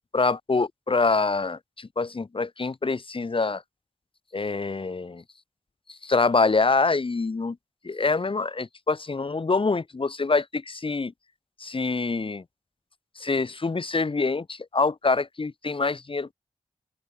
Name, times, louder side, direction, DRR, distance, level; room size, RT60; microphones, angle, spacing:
voice 1, 0.1-3.6 4.3-5.2 5.9-7.6 7.8-11.1 11.6-12.4 13.2-16.3, left 3 dB, 50° left, 2.7 m, -25 dB
open air
cardioid pair, 60°, 12 cm